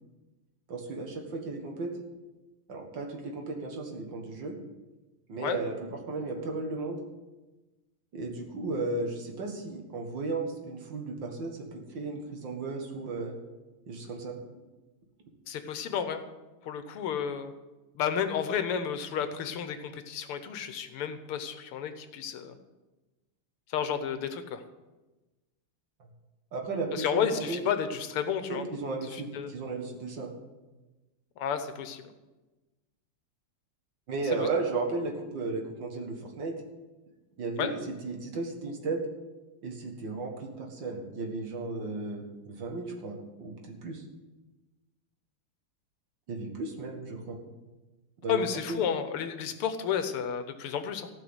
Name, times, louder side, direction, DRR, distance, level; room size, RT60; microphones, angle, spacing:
voice 1, 0.7-1.9 2.7-4.5 5.3-7.0 8.1-13.4 13.9-14.4 26.5-27.6 28.5-30.3 34.1-36.5 37.4-39.0 39.6-44.0 46.3-47.4 48.2-48.4 48.7-48.8, right 3 dB, 60° right, 2 dB, 2.3 m, -35 dB
voice 2, 15.5-16.2 16.6-17.5 18.0-22.6 23.7-24.6 26.9-28.6 29.1-29.5 31.4-32.0 34.4-34.5 37.6-37.7 48.3-51.1, left 8 dB, 90° left, 9 dB, 1.9 m, -31 dB
15.0 x 5.9 x 8.0 m, 1.1 s
omnidirectional pair, 2.4 m